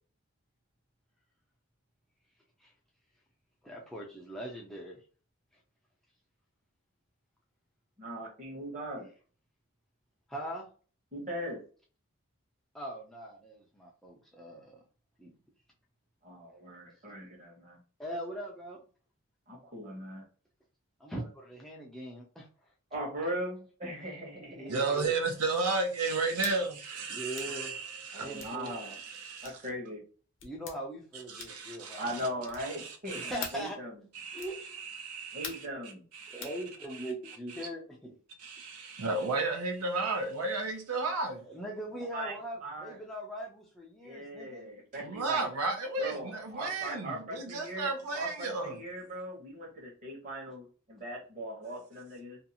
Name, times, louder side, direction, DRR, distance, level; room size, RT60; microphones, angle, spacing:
voice 1, 3.6-5.0 10.3-10.7 12.7-14.8 15.2-15.3 18.0-18.8 21.0-22.5 24.4-25.1 27.1-27.7 28.2-28.7 30.4-32.6 33.1-33.8 34.3-34.6 36.3-38.2 41.4-44.7, right 1 dB, ahead, 0.4 m, -41 dB
voice 2, 8.0-9.1 11.1-11.6 16.2-17.8 19.5-20.2 22.9-24.7 28.1-28.9 29.4-30.0 31.9-34.0 35.3-36.0 42.1-42.3 42.6-43.0 44.0-45.4 46.0-52.4, equal, 35° right, 1.0 m, -39 dB
voice 3, 24.7-29.6 31.3-32.0 32.6-33.3 34.1-35.7 36.1-36.6 36.9-37.7 38.4-41.5 44.9-48.8, right 3 dB, 85° right, 0.6 m, -34 dB
sound 1, 26.4-26.6 27.3-27.6 28.4-28.6 29.4-29.6 30.4-30.8 31.4-31.7 32.4-32.8 33.4-33.7 34.4-34.6 35.4-35.7 36.4-36.6, left 6 dB, 55° left, 0.6 m, -43 dB
2.6 x 2.3 x 2.7 m
head